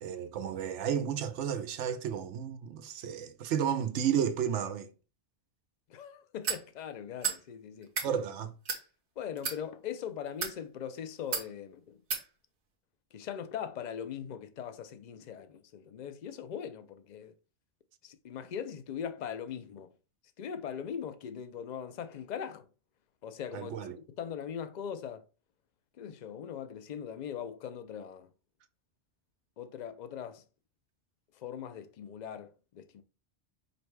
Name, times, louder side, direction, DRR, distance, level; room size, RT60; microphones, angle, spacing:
voice 1, 0.0-4.9 8.0-8.5 23.5-24.0, right 8 dB, 85° right, 0.9 m, -32 dB
voice 2, 5.9-7.9 9.2-12.0 13.1-17.4 18.0-19.9 20.4-22.7 23.2-23.8 24.2-25.2 26.0-28.3 29.6-30.4 31.3-33.0, left 8 dB, 60° left, 0.5 m, -40 dB
sound 1, 6.4-6.6 7.2-7.4 7.8-8.1 8.7-8.8 9.4-9.6 10.3-10.6 11.3-11.5 12.1-12.2, right 6 dB, 70° right, 1.2 m, -32 dB
5.1 x 2.2 x 4.5 m
omnidirectional pair, 1.2 m